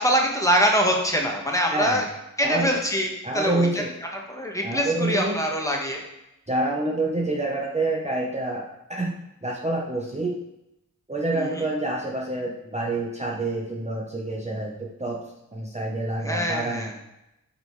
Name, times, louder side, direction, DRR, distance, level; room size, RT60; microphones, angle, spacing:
voice 1, 0.0-2.0 2.4-3.8 4.1-6.0 11.3-11.6 16.2-16.9, equal, 10° left, 0 dB, 1.3 m, -24 dB
voice 2, 1.7-2.0 2.4-2.7 3.2-3.9 4.6-5.4 6.5-9.1 9.4-10.3 11.1-15.2 15.5-16.9, right 2 dB, 20° right, -2 dB, 0.9 m, -27 dB
6.3 x 5.2 x 4.7 m, 0.89 s
wide cardioid pair, 100°, 35 cm